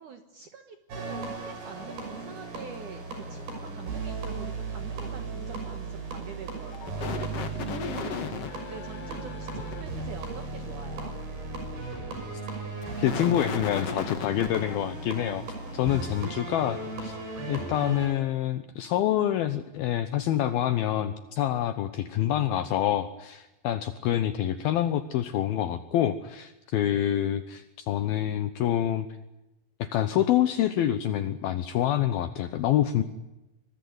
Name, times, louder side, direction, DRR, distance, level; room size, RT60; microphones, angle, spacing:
voice 1, 0.0-7.5 8.7-11.1 15.8-16.3, right 6 dB, 70° right, 7 dB, 1.9 m, -45 dB
sound 1, 0.9-18.1, right 3 dB, 50° right, 7.7 m, -36 dB
sound 2, 6.6-9.8 12.6-14.8, left 6 dB, 60° left, 1.5 m, -36 dB
voice 2, 12.9-15.4 15.7-17.2 17.5-29.1 29.8-33.0, left 11 dB, 80° left, 10 dB, 2.1 m, -27 dB
25.0 x 20.5 x 9.5 m, 0.97 s
omnidirectional pair, 5.7 m